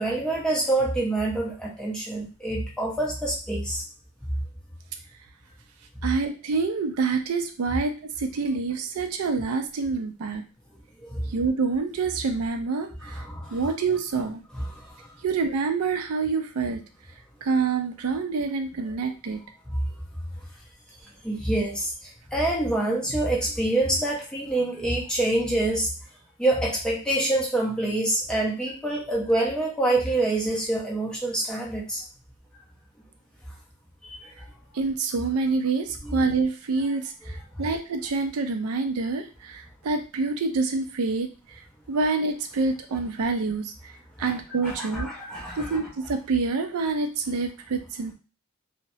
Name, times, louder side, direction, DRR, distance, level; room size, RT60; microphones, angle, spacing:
voice 1, 0.0-3.8 11.0-11.3 13.0-13.6 14.5-15.2 19.7-19.8 21.2-25.9 26.4-32.0 34.0-34.3 36.0-36.2 37.6-37.7 44.2-44.4 44.6-45.8, right 2 dB, 5° left, -4 dB, 0.6 m, -26 dB
voice 2, 6.0-10.4 11.3-13.2 13.5-14.4 15.2-16.8 17.4-19.4 34.7-43.9 44.2-45.1 45.6-48.1, right 4 dB, 70° right, 6 dB, 0.4 m, -27 dB
2.9 x 2.0 x 2.6 m, 0.34 s
head